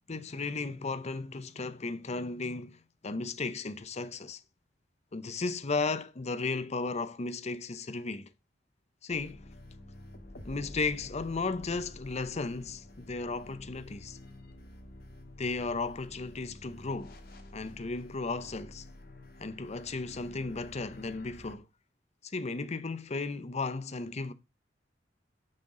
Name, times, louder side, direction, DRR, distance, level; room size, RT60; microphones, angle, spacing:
voice 1, 0.1-4.4 5.1-8.3 9.0-9.5 10.4-14.2 15.4-17.2 17.5-18.8 19.4-21.7 22.2-24.3, left 3 dB, 35° left, 0.7 m, -35 dB
sound 1, 9.1-21.5, left 1 dB, 55° left, 1.6 m, -49 dB
6.4 x 5.8 x 3.7 m
head